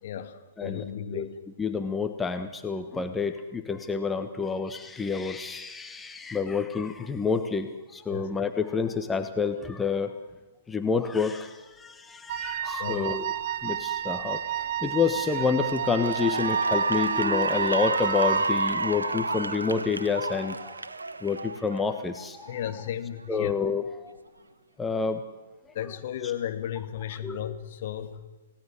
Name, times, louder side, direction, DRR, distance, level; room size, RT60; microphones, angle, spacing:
voice 1, 0.0-1.4 8.1-8.3 12.8-13.1 22.5-23.5 25.7-28.3, left 10 dB, 50° left, 6 dB, 2.6 m, -34 dB
voice 2, 1.6-10.1 10.7-20.7 21.2-22.6 23.3-24.2 24.8-25.2 27.2-27.4, left 5 dB, 10° left, 7 dB, 1.4 m, -28 dB
Wind instrument woodwind instrument, 12.3-18.6, right 12 dB, 40° right, 0.8 m, -32 dB
Cheering / Applause, 14.9-15.1 15.6-22.1, right 3 dB, 75° right, 1.0 m, -29 dB
29.0 x 18.5 x 8.0 m, 1.2 s
figure-of-eight pair, 115°, 0 cm